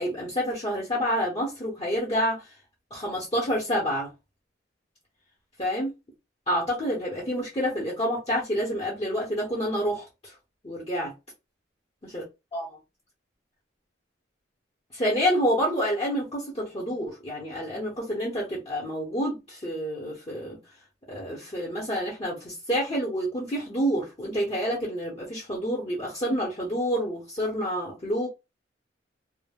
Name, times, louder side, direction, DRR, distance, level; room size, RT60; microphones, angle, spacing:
voice 1, 0.0-2.5 2.9-4.1 5.6-5.9 6.5-10.3 10.6-11.1 12.0-12.2 12.5-12.7 14.9-20.6 21.1-28.3, equal, 30° left, 0.8 m, -28 dB
2.2 x 2.0 x 3.4 m
head